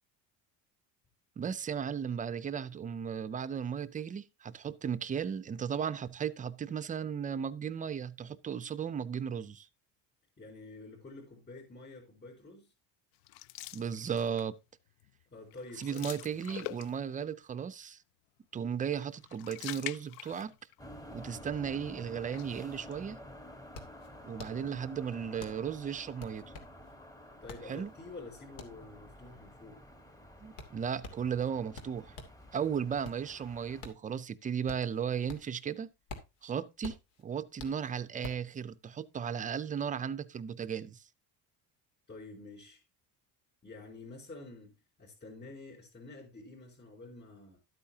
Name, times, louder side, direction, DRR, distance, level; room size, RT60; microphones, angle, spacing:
voice 1, 1.4-9.7 13.7-14.6 15.8-18.0 18.5-20.5 21.1-23.2 24.3-26.5 27.7-27.9 30.4-32.2 32.5-35.9 36.4-37.0 37.2-41.0, right 7 dB, 20° right, 0.4 m, -35 dB
voice 2, 10.4-12.7 15.3-16.6 27.4-29.8 42.1-42.8 43.6-47.6, left 2 dB, 25° left, 4.2 m, -49 dB
sound 1, 13.2-14.6 15.0-15.2 15.5-17.2 19.0-20.8 21.1-21.2 22.1-22.9, left 18 dB, 70° left, 0.5 m, -45 dB
sound 2, 20.8-33.8, equal, 10° left, 1.1 m, -51 dB
sound 3, 23.7-32.4 32.8-35.7 35.9-38.5, left 3 dB, 85° left, 2.7 m, -49 dB
12.5 x 8.6 x 2.8 m
cardioid pair, 160°, 39 cm